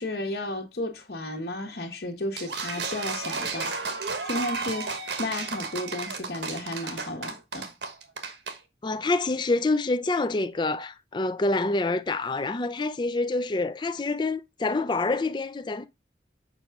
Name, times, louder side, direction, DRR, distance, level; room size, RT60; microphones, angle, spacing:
voice 1, 0.0-7.7, left 1 dB, 60° left, 1.2 m, -33 dB
sound 1, 2.4-8.6, right 4 dB, 80° right, 1.3 m, -33 dB
voice 2, 8.8-15.9, left 2 dB, 25° left, 0.4 m, -27 dB
6.9 x 5.7 x 3.5 m
head